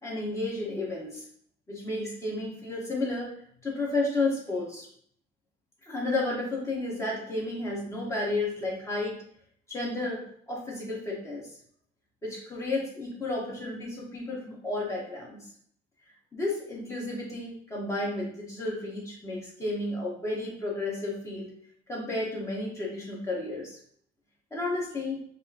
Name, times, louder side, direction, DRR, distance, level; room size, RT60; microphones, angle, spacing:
voice 1, 0.0-1.2 1.7-3.3 3.6-4.9 5.9-9.2 9.7-11.4 12.2-15.5 16.3-21.5 21.9-23.8 24.5-25.2, left 2 dB, 15° left, -4 dB, 1.3 m, -32 dB
4.6 x 2.2 x 2.9 m, 0.63 s
cardioid pair, 110°, 17 cm